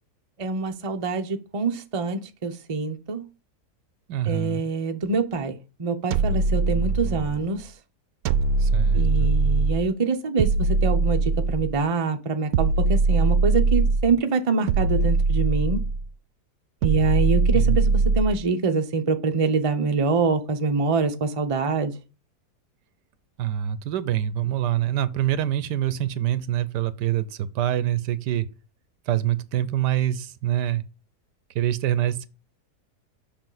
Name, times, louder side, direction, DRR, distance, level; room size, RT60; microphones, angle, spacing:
voice 1, 0.4-3.3 4.2-7.7 8.9-15.9 16.8-21.9, right 4 dB, 35° right, 0.5 m, -25 dB
voice 2, 4.1-4.6 8.6-9.3 17.5-17.8 23.4-28.5 29.1-30.8 31.5-32.3, right 12 dB, 85° right, 1.3 m, -25 dB
sound 1, 6.1-7.4 8.3-9.9 10.4-11.8 12.5-14.1 14.7-16.1 16.8-18.4, right 3 dB, 70° right, 1.0 m, -21 dB
6.9 x 6.1 x 3.9 m
omnidirectional pair, 1.8 m